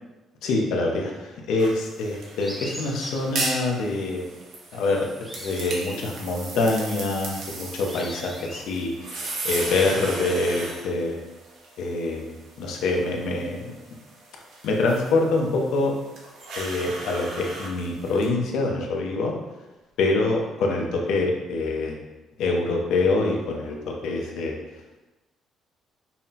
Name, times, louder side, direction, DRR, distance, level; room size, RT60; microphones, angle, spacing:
voice 1, 0.4-4.2 4.7-5.1 5.4-11.2 11.8-13.7 14.6-15.9 16.6-19.3 20.0-22.0 22.4-24.5, left 2 dB, 75° left, 0 dB, 0.6 m, -25 dB
sound 1, 1.6-18.3, right 2 dB, 75° right, 0.9 m, -37 dB
sound 2, 2.4-3.3 4.6-8.6, equal, 5° right, 0.4 m, -41 dB
5.5 x 2.1 x 2.8 m, 1.1 s
cardioid pair, 170°, 0 cm